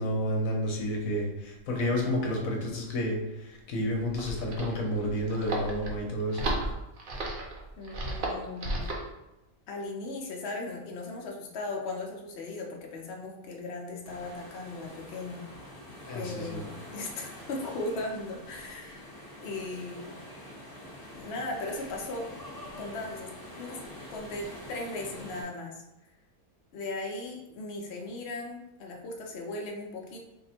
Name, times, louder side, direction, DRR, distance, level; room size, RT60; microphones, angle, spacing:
voice 1, 0.0-6.5 16.1-16.7, equal, 70° left, 0 dB, 1.1 m, -30 dB
sound 1, 4.0-9.1, right 2 dB, 50° right, 0.6 m, -34 dB
voice 2, 7.8-8.8 9.7-15.4 16.1-19.0 19.4-20.0 21.2-22.3 22.8-23.8 24.1-25.8 26.7-30.2, left 2 dB, 55° left, 0 dB, 0.8 m, -37 dB
sound 2, 14.0-25.4, left 1 dB, 15° left, 0.9 m, -46 dB
3.6 x 2.1 x 4.2 m, 0.96 s
omnidirectional pair, 1.5 m